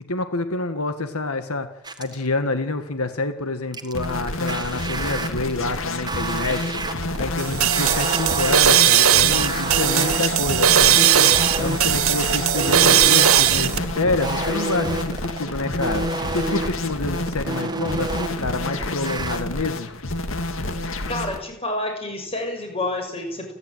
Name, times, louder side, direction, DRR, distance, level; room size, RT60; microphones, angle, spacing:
voice 1, 0.1-1.7 2.0-16.1 16.3-19.9, left 2 dB, 85° left, 9 dB, 1.7 m, -27 dB
sound 1, 1.8-2.3 3.7-19.4, right 2 dB, 20° right, 1.8 m, -30 dB
sound 2, 3.9-21.4, left 2 dB, 65° left, 2.3 m, -29 dB
sound 3, 7.4-13.8, right 10 dB, 75° right, 1.8 m, -18 dB
voice 2, 21.1-23.5, left 1 dB, 25° left, 4 dB, 6.3 m, -28 dB
29.0 x 12.0 x 9.2 m, 0.86 s
head